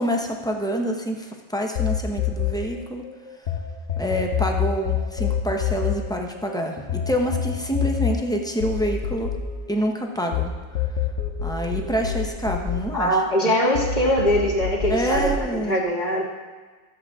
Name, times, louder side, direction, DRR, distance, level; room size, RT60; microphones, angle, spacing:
voice 1, 0.0-3.0 4.0-9.4 9.7-10.5 10.9-11.0 11.4-13.5 14.9-15.8, equal, 5° left, 2 dB, 0.8 m, -27 dB
sound 1, 1.8-3.6 3.9-10.4 10.8-13.4 13.8-15.4, left 9 dB, 90° left, 1.3 m, -26 dB
voice 2, 12.9-16.2, equal, 35° left, -3 dB, 1.8 m, -22 dB
13.5 x 7.4 x 3.6 m, 1.4 s
omnidirectional pair, 1.2 m